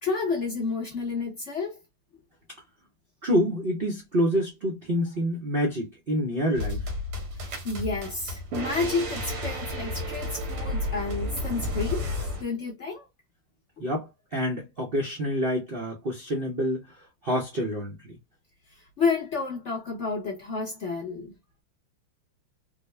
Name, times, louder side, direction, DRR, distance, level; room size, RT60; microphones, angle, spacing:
voice 1, 0.0-1.8 7.4-13.1 18.8-21.3, left 4 dB, 60° left, 0.7 m, -30 dB
voice 2, 3.2-6.8 13.8-16.8 17.2-18.2, equal, 65° right, 0.5 m, -27 dB
sound 1, 6.5-12.4, left 1 dB, 85° right, 1.9 m, -32 dB
4.0 x 2.1 x 3.3 m
omnidirectional pair, 2.3 m